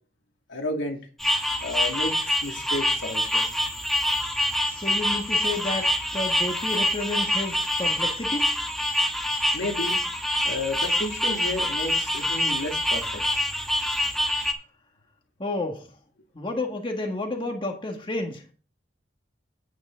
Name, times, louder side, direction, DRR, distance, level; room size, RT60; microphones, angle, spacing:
voice 1, 0.5-1.0 1.6-3.5 9.5-10.0 10.4-13.2, left 2 dB, 80° left, 2 dB, 2.3 m, -32 dB
sound 1, 1.2-14.5, left 1 dB, ahead, 1.5 m, -26 dB
voice 2, 4.7-8.6 15.4-15.9 16.3-18.5, left 2 dB, 25° left, 2 dB, 1.6 m, -31 dB
9.3 x 9.1 x 3.9 m, 0.38 s
head